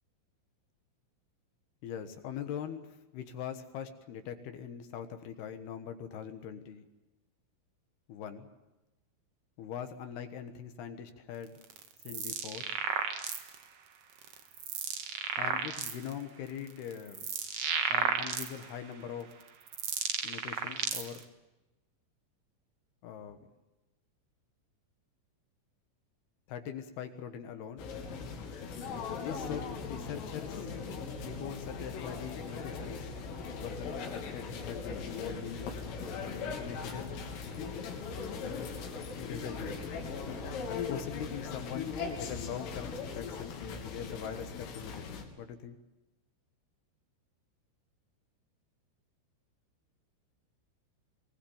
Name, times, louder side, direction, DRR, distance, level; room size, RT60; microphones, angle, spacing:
voice 1, 1.8-6.9 8.1-8.5 9.6-11.5 12.0-12.8 15.4-17.3 17.9-19.3 20.2-21.2 23.0-23.4 26.5-27.9 29.2-30.7 31.2-33.1 33.5-35.7 36.6-37.2 38.3-38.7 39.2-39.8 40.7-45.8, left 8 dB, 65° left, 8 dB, 2.9 m, -42 dB
sound 1, 11.6-13.6 14.2-16.1 16.7-18.8 19.4-21.2, right 6 dB, 80° right, 1.3 m, -33 dB
sound 2, 27.8-45.3, left 5 dB, 85° left, 5.7 m, -39 dB
24.5 x 19.5 x 8.7 m, 1.0 s
omnidirectional pair, 5.8 m